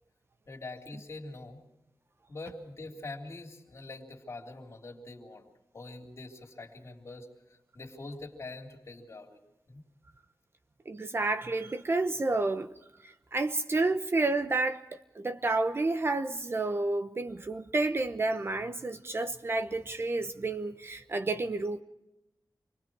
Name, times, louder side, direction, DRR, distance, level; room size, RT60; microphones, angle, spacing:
voice 1, 0.5-1.6 2.3-5.4 5.7-7.3 7.7-9.4 9.7-9.8, left 2 dB, 45° left, 3.3 m, -44 dB
voice 2, 10.9-12.7 13.0-21.8, right 2 dB, 35° right, 0.9 m, -30 dB
27.0 x 21.5 x 4.7 m
wide cardioid pair, 140°, 7 cm